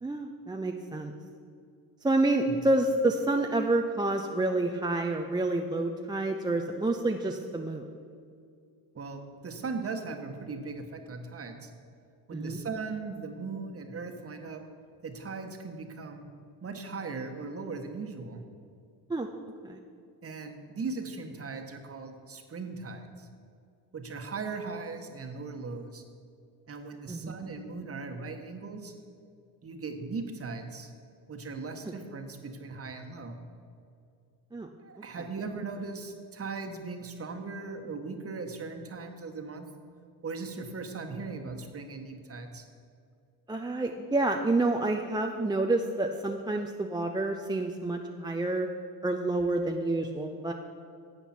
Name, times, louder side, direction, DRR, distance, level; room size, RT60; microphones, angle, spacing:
voice 1, 0.0-1.1 2.0-7.8 12.3-12.6 19.1-19.3 19.6-19.8 27.1-27.4 34.5-34.7 43.5-48.7 49.0-50.5, right 2 dB, 10° right, 3 dB, 0.5 m, -28 dB
voice 2, 8.9-11.7 12.3-14.6 15.0-16.2 16.6-18.4 20.2-23.3 23.9-26.0 26.7-28.9 29.6-30.9 31.3-33.3 34.8-39.7 40.2-42.6, right 4 dB, 30° right, 5 dB, 1.3 m, -38 dB
12.0 x 8.0 x 4.4 m, 2.3 s
supercardioid pair, 80°, 47 cm